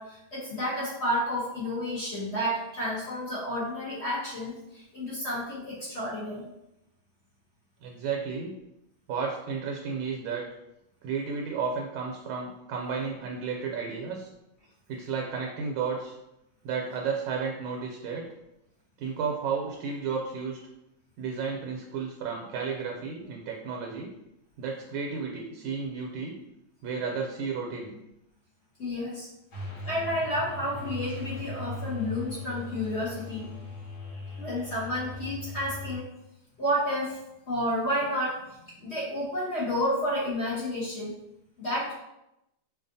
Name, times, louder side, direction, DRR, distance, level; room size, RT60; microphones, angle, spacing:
voice 1, 0.0-6.5 28.8-29.3 29.8-33.5 34.4-36.0 36.6-37.2 37.5-41.1 41.6-41.9, equal, 45° left, -7 dB, 0.9 m, -31 dB
voice 2, 7.8-8.5 9.1-10.5 11.0-14.3 14.9-16.1 16.6-18.2 19.0-20.6 21.2-24.1 24.6-26.4 26.8-27.9, right 5 dB, 80° right, 0 dB, 1.4 m, -32 dB
sound 1, 29.5-36.0, left 2 dB, 70° left, 2.1 m, -39 dB
5.1 x 2.4 x 2.6 m, 0.86 s
omnidirectional pair, 2.2 m